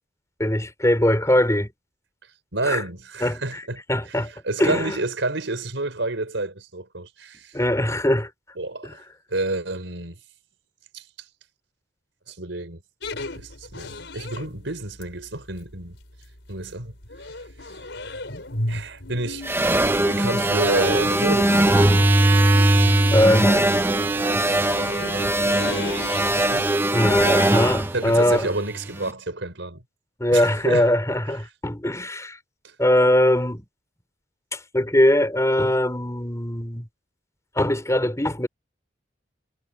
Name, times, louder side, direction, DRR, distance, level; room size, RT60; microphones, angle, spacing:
voice 1, 0.4-1.7 2.6-2.8 3.2-3.6 3.9-4.3 4.6-5.0 7.5-8.3 8.8-8.9 23.1-23.7 26.9-28.5 30.2-32.4 32.8-33.6 34.5-36.9 37.6-38.5, left 1 dB, 15° left, 4.0 m, -21 dB
voice 2, 2.5-7.5 8.6-9.0 9.3-10.2 10.9-11.0 12.3-12.8 13.3-16.0 16.5-16.9 17.6-17.7 18.7-19.4 20.1-21.9 24.9-25.1 26.3-26.6 27.9-29.8 30.3-30.9 32.6-32.7, right 2 dB, 85° right, 4.5 m, -29 dB
sound 1, 13.0-26.6, left 2 dB, 70° left, 5.2 m, -35 dB
sound 2, 19.5-28.9, right 1 dB, 15° right, 0.9 m, -20 dB
head